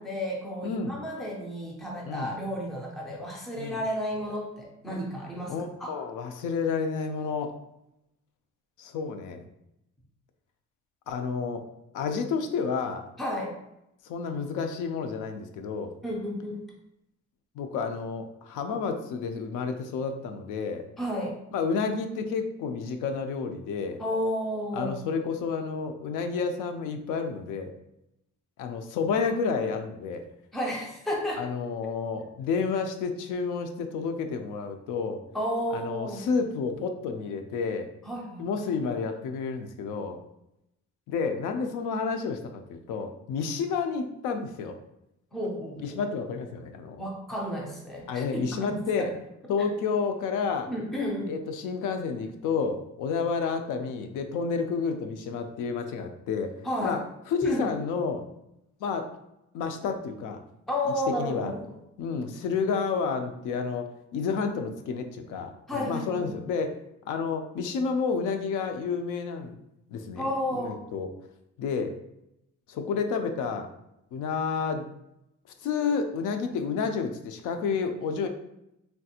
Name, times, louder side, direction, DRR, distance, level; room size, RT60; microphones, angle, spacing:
voice 1, 0.0-5.5 5.8-5.9 13.2-13.6 16.0-16.6 21.0-21.4 24.0-24.9 30.5-31.4 35.3-36.2 38.0-38.4 45.3-46.0 47.0-49.1 50.7-51.3 56.6-57.0 57.4-57.7 60.7-61.6 65.7-66.3 70.2-70.8, equal, ahead, -1 dB, 0.3 m, -32 dB
voice 2, 0.6-1.0 2.0-2.3 3.6-3.8 5.5-7.5 8.8-9.5 11.1-11.6 11.9-13.0 14.0-15.9 17.6-20.9 21.5-24.0 24.7-27.7 28.6-30.2 31.4-35.2 35.7-37.9 38.4-40.2 41.1-44.8 45.8-47.0 48.1-49.1 49.5-50.7 51.3-56.5 56.8-58.2 58.8-59.1 59.5-60.4 61.2-61.5 62.0-66.8 67.1-69.5 69.9-71.1 71.6-71.9 72.7-73.7 74.1-74.9 75.6-78.3, left 5 dB, 80° left, 6 dB, 0.5 m, -30 dB
3.3 x 2.4 x 2.8 m, 0.85 s
cardioid pair, 180°, 30 cm